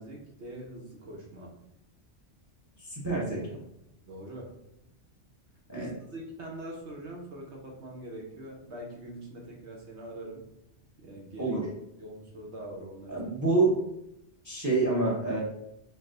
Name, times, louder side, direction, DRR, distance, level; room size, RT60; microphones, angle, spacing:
voice 1, 0.0-1.5 4.1-4.5 5.8-10.4 11.0-11.6 12.0-13.3, right 1 dB, 70° right, -1 dB, 1.1 m, -43 dB
voice 2, 2.8-3.4 5.7-5.9 11.4-11.7 13.1-13.8 14.4-15.4, right 3 dB, 15° right, -4 dB, 0.8 m, -27 dB
4.3 x 2.1 x 3.8 m, 0.81 s
omnidirectional pair, 1.2 m